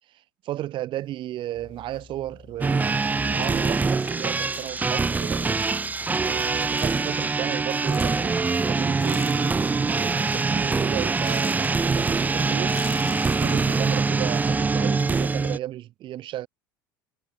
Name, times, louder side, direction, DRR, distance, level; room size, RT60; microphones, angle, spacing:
voice 1, 0.5-5.5 6.1-12.8 13.3-16.5, right 13 dB, 45° right, 1.0 m, -34 dB
sound 1, 1.0-2.6 2.9-10.2 10.4-15.1, left 17 dB, 55° left, 1.1 m, -45 dB
sound 2, 1.5-12.9, left 5 dB, 25° left, 2.2 m, -52 dB
sound 3, 2.6-15.6, right 4 dB, 15° right, 0.4 m, -24 dB
figure-of-eight pair, 65°, 11 cm